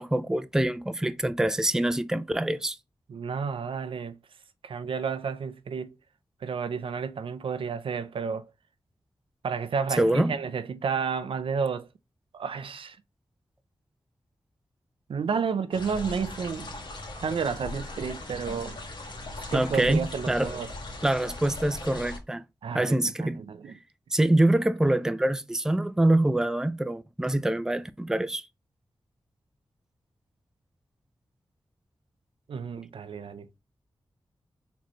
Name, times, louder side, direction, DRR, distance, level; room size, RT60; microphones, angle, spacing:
voice 1, 0.0-2.8 10.0-10.4 19.5-20.6 21.0-22.4 22.7-23.4 24.1-28.4, right 1 dB, 5° right, 0.4 m, -25 dB
voice 2, 3.1-4.1 4.6-5.9 6.4-8.5 9.4-11.9 12.3-13.0 15.1-16.8 17.2-18.8 19.5-20.7 22.6-23.8 32.5-33.6, right 6 dB, 80° right, 0.5 m, -31 dB
sound 1, 15.7-22.2, left 2 dB, 60° left, 1.5 m, -39 dB
4.2 x 3.0 x 2.9 m
cardioid pair, 65°, 9 cm